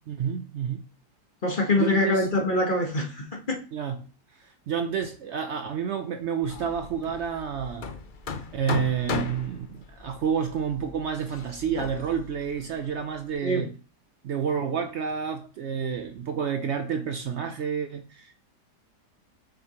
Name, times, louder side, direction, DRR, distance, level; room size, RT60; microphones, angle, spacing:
voice 1, 0.1-0.8 1.8-2.3 3.7-4.0 4.4-7.9 8.5-13.7 14.2-18.4, right 7 dB, 80° right, 0.6 m, -29 dB
voice 2, 1.4-3.6 13.4-13.6, left 1 dB, 35° left, 1.2 m, -24 dB
Hammer, 6.4-13.3, left 6 dB, 65° left, 0.5 m, -37 dB
6.8 x 5.7 x 2.9 m
omnidirectional pair, 1.8 m